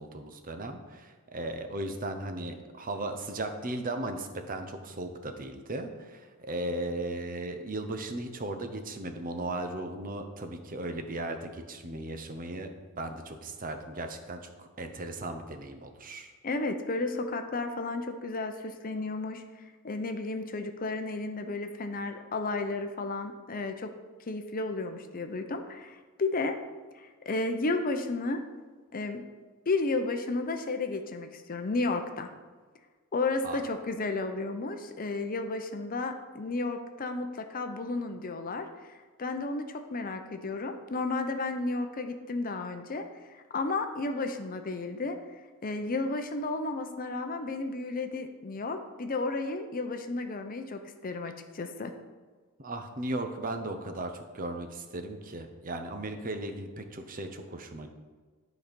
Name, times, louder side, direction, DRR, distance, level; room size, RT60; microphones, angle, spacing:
voice 1, 0.0-12.7 13.0-16.3 33.4-33.8 52.6-57.9, right 2 dB, 40° right, 6 dB, 0.8 m, -36 dB
voice 2, 16.4-23.9 24.3-26.6 26.9-28.4 28.9-29.2 29.7-32.3 33.1-43.0 43.3-51.9, left 3 dB, 40° left, 7 dB, 0.6 m, -33 dB
11.5 x 4.1 x 5.2 m, 1.4 s
head